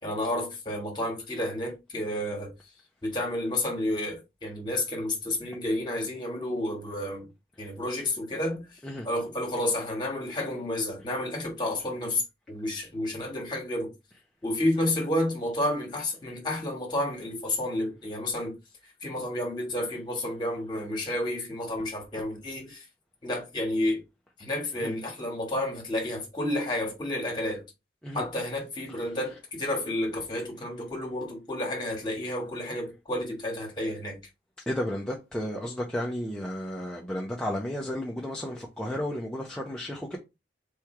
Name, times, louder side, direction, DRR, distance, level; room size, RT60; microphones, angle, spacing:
voice 1, 0.0-2.5 3.0-7.3 7.6-8.6 9.0-12.2 12.5-13.9 14.4-18.5 19.0-22.8 23.2-24.0 24.4-27.6 28.1-34.2, left 1 dB, 25° left, 1.7 m, -30 dB
voice 2, 34.7-40.2, equal, 5° left, 0.5 m, -33 dB
3.6 x 3.1 x 4.5 m
head